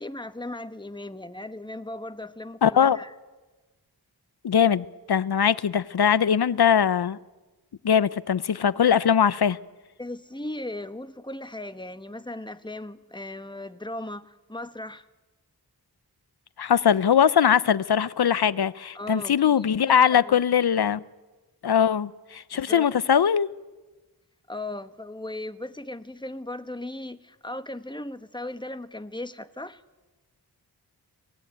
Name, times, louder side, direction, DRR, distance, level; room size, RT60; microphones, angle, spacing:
voice 1, 0.0-3.1 10.0-15.0 18.9-19.4 20.0-20.4 22.5-22.9 24.5-29.8, left 1 dB, 10° left, 10 dB, 1.2 m, -37 dB
voice 2, 2.6-3.0 4.4-7.2 7.8-9.6 16.6-21.0 21.6-23.5, left 8 dB, 70° left, 18 dB, 0.8 m, -21 dB
25.0 x 18.5 x 9.3 m, 1.2 s
wide cardioid pair, 60°, 40 cm